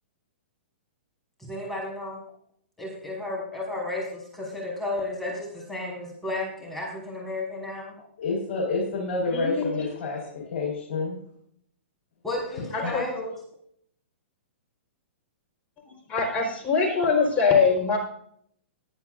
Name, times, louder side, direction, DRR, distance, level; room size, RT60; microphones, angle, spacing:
voice 1, 1.4-2.2 2.8-7.9 12.2-13.4, left 2 dB, 5° left, -4 dB, 5.5 m, -33 dB
voice 2, 8.2-11.2 12.8-12.9, left 3 dB, 55° left, -1 dB, 5.0 m, -28 dB
voice 3, 9.3-9.9 12.7-13.0 15.9-18.0, left 5 dB, 25° left, 1 dB, 4.5 m, -23 dB
20.0 x 10.5 x 2.6 m, 0.65 s
hypercardioid pair, 140°, 7 cm